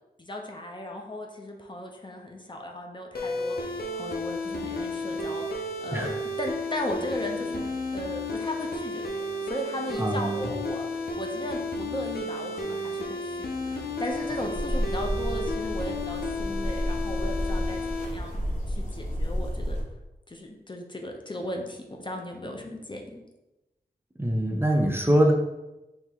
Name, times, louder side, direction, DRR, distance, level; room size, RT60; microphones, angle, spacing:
voice 1, 0.2-3.6 3.9-5.4 5.8-7.6 7.9-18.3 18.7-19.8 20.3-23.2, left 1 dB, 30° left, 2 dB, 0.6 m, -36 dB
sound 1, 3.1-18.1, left 1 dB, 70° left, 0.6 m, -32 dB
voice 2, 5.9-6.2 10.0-10.5 24.2-25.3, right 1 dB, 15° right, 1 dB, 0.6 m, -23 dB
sound 2, 14.1-19.8, equal, 50° left, 1.1 m, -31 dB
4.3 x 2.9 x 3.5 m, 1.0 s
wide cardioid pair, 65°, 16 cm